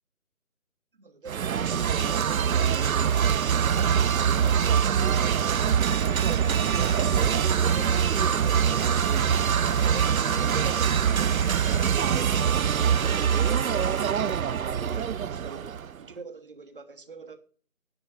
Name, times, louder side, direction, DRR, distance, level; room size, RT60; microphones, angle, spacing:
voice 1, 0.9-3.0 3.3-8.9 9.3-11.7 12.0-17.4, right 4 dB, 40° right, 1.2 m, -45 dB
sound 1, 1.3-16.0, right 8 dB, 75° right, 0.5 m, -24 dB
sound 2, 4.2-4.5 5.3-7.7 8.5-11.0 11.6-14.0 14.8-16.0, left 2 dB, 15° left, 1.3 m, -51 dB
sound 3, 6.4-14.1, left 6 dB, 70° left, 0.6 m, -45 dB
11.0 x 7.0 x 6.9 m
figure-of-eight pair, 160°, 43 cm